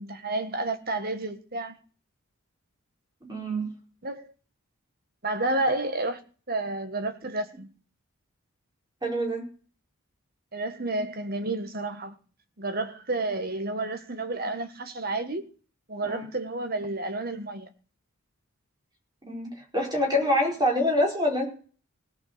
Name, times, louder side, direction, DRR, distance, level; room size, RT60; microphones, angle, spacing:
voice 1, 0.0-1.8 4.0-4.3 5.2-6.2 6.5-7.7 10.5-12.1 12.6-15.5 15.9-17.7, right 2 dB, 45° right, 1.6 m, -30 dB
voice 2, 3.2-3.7 9.0-9.4 16.0-16.2 19.2-21.5, left 1 dB, 20° right, 4.9 m, -26 dB
17.5 x 6.6 x 6.8 m
head